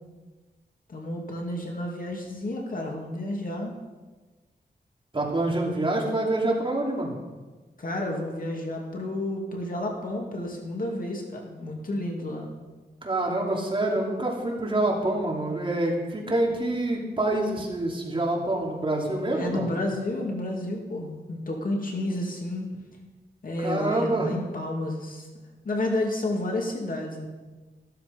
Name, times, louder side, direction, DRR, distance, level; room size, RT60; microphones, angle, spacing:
voice 1, 0.9-3.8 7.8-12.5 19.3-22.7 23.4-25.3 25.6-27.3, left 1 dB, 55° left, 0 dB, 2.3 m, -31 dB
voice 2, 5.1-7.2 13.0-19.7 23.6-24.3, right 2 dB, 30° right, -2 dB, 2.9 m, -26 dB
13.5 x 13.0 x 5.2 m, 1.3 s
wide cardioid pair, 150°, 17 cm